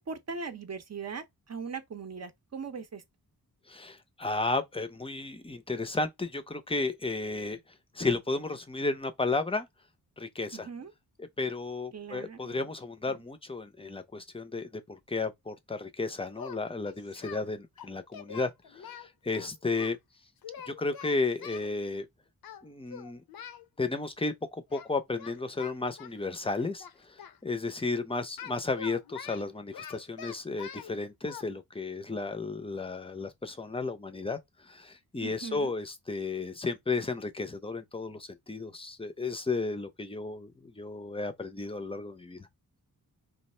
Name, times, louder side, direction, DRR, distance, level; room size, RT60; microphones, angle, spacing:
voice 1, 0.0-3.0 10.5-10.9 11.9-12.6 13.1-13.2 35.2-35.7, right 5 dB, 45° right, 0.7 m, -40 dB
voice 2, 3.7-7.6 7.9-9.7 10.2-10.7 11.2-20.0 20.7-22.1 22.6-23.2 23.8-34.4 34.6-42.5, left 3 dB, 15° left, 0.5 m, -33 dB
Singing, 16.3-17.4 17.8-19.9 20.4-21.7 22.4-22.6 22.9-23.6 24.7-24.9 25.2-27.4 28.4-30.9 31.2-31.4, left 8 dB, 70° left, 0.6 m, -45 dB
3.1 x 2.4 x 4.2 m
wide cardioid pair, 145°, 37 cm